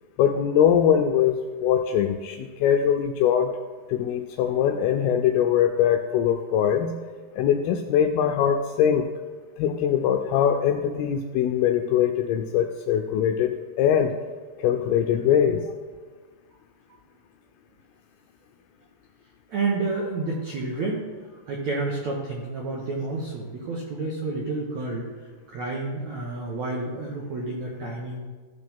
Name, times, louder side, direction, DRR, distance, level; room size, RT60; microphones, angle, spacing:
voice 1, 0.2-3.5 3.9-6.9 7.4-9.1 9.6-14.1 14.6-15.6, left 9 dB, 85° left, 5 dB, 2.2 m, -22 dB
voice 2, 19.5-25.1 25.5-28.2, right 3 dB, 75° right, -2 dB, 1.6 m, -30 dB
15.0 x 6.7 x 3.6 m, 1.4 s
omnidirectional pair, 4.9 m